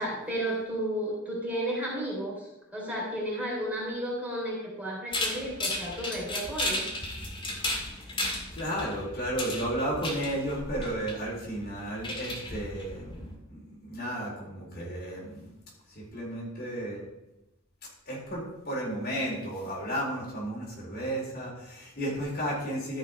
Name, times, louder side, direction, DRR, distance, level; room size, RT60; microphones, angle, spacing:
voice 1, 0.0-6.9, right 1 dB, 5° right, -5 dB, 3.5 m, -33 dB
sound 1, 5.1-13.4, left 1 dB, 25° left, 2.0 m, -35 dB
voice 2, 7.8-8.2 8.5-15.5 15.9-17.0 18.1-23.0, right 1 dB, 45° left, -5 dB, 4.2 m, -33 dB
13.5 x 5.4 x 5.3 m, 0.93 s
head